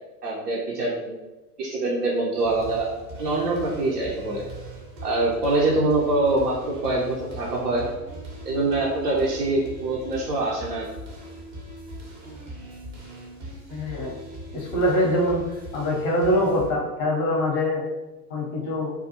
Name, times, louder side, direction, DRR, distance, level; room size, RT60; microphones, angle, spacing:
voice 1, 0.2-1.2 1.6-2.9 3.2-4.4 5.0-7.8 8.5-10.9, right 2 dB, 75° right, -4 dB, 0.6 m, -24 dB
sound 1, 2.4-16.7, right 1 dB, 25° right, 0.5 m, -40 dB
voice 2, 13.7-14.1 14.5-15.4 15.7-17.8 18.3-18.9, equal, 25° left, -3 dB, 0.6 m, -23 dB
2.3 x 2.0 x 2.7 m, 1.1 s
figure-of-eight pair, 90°, 47 cm